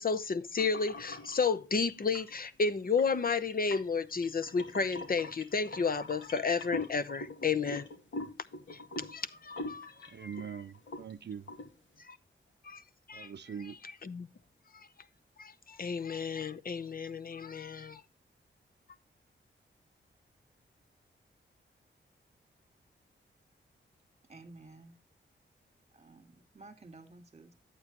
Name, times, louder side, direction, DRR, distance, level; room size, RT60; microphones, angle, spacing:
voice 1, 0.0-7.9 8.7-8.8 9.1-10.3 12.1-12.2 12.6-12.8 13.1-13.3 14.0-14.3 14.7-14.9 15.4-18.0, left 5 dB, 50° left, 0.7 m, -32 dB
sound 1, 0.6-1.4 2.0-2.4 2.9-10.5 10.7-11.1 11.5-11.7, left 2 dB, 75° left, 2.3 m, -42 dB
voice 2, 10.1-11.5 13.1-13.8, right 7 dB, 60° right, 0.6 m, -42 dB
voice 3, 24.3-25.0 25.9-27.5, right 2 dB, 35° right, 2.0 m, -53 dB
12.0 x 8.5 x 2.9 m
wide cardioid pair, 120°, 20 cm